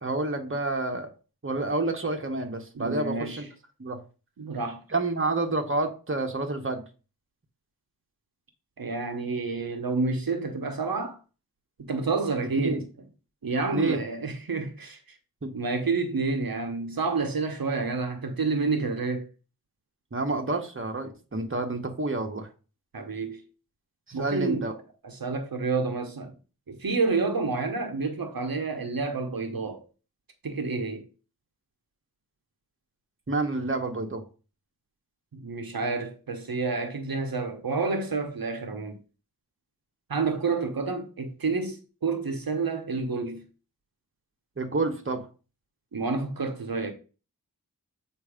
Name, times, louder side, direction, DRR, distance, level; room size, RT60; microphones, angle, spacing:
voice 1, 0.0-1.1 1.4-3.5 3.8-4.0 4.9-6.8 12.6-12.8 13.7-14.0 15.4-15.5 20.1-22.5 24.1-24.7 33.3-34.2 44.6-45.3, right 2 dB, 35° right, 1.0 m, -29 dB
voice 2, 2.7-3.4 4.4-4.8 8.8-11.2 11.9-12.8 13.4-15.0 15.5-19.3 22.9-23.4 24.1-24.7 25.0-26.3 26.7-29.8 30.4-31.1 35.3-39.0 40.1-43.4 45.9-46.9, right 4 dB, 70° right, 0.8 m, -29 dB
7.8 x 2.7 x 4.9 m
wide cardioid pair, 55°, 37 cm